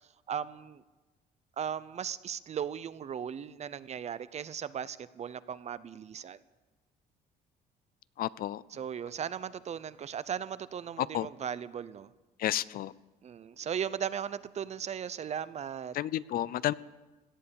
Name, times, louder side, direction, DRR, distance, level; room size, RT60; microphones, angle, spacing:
voice 1, 0.3-0.8 1.6-6.4 8.7-12.1 13.2-16.0, right 8 dB, 40° right, 16 dB, 0.7 m, -37 dB
voice 2, 8.2-8.6 11.0-11.3 12.4-12.9 15.9-16.7, left 13 dB, 60° left, 19 dB, 0.5 m, -31 dB
17.5 x 11.0 x 7.0 m, 1.2 s
cardioid pair, 110°, 17 cm